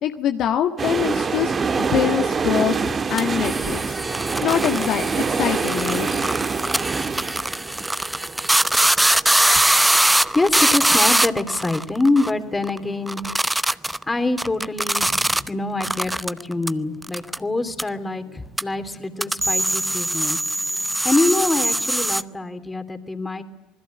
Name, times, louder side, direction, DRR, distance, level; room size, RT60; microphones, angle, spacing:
voice 1, 0.0-4.0 4.4-6.1, left 10 dB, 55° left, 6 dB, 1.6 m, -24 dB
sound 1, 0.8-10.6 10.9-11.0, right 5 dB, 30° right, 1.8 m, -26 dB
sound 2, 3.2-12.3 12.6-12.8 13.1-14.0 14.4-15.5 15.8-16.7 17.0-17.4 17.8-17.9 18.6-18.7 19.2-22.2, right 1 dB, 5° right, 0.8 m, -22 dB
voice 2, 9.8-13.2 14.1-20.4 20.7-23.4, left 2 dB, 15° left, 8 dB, 3.1 m, -25 dB
26.5 x 20.5 x 8.7 m, 0.98 s
hypercardioid pair, 70°, 0 cm